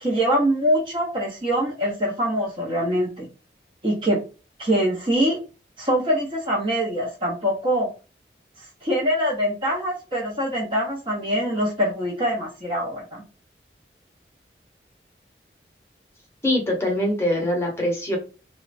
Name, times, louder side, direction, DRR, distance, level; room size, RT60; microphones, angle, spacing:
voice 1, 0.0-3.3 3.8-4.2 4.6-5.4 5.8-7.9 8.6-13.2, equal, 30° right, -1 dB, 0.6 m, -24 dB
voice 2, 16.4-18.2, left 1 dB, 15° left, -1 dB, 0.8 m, -23 dB
3.0 x 2.1 x 2.5 m, 0.34 s
head